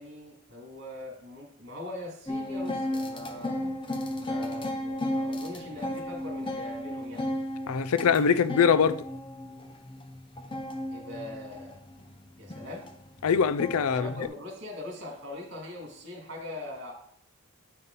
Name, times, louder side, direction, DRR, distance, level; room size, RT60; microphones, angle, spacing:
voice 1, 0.0-3.6 4.2-7.3 10.9-11.8 12.4-12.9 13.9-16.9, left 2 dB, 50° right, 2.7 m, -41 dB
sound 1, 2.3-14.3, left 1 dB, 20° left, 0.6 m, -35 dB
voice 2, 7.7-9.0 13.2-14.1, left 6 dB, 75° left, 0.4 m, -23 dB
9.5 x 5.5 x 4.0 m
head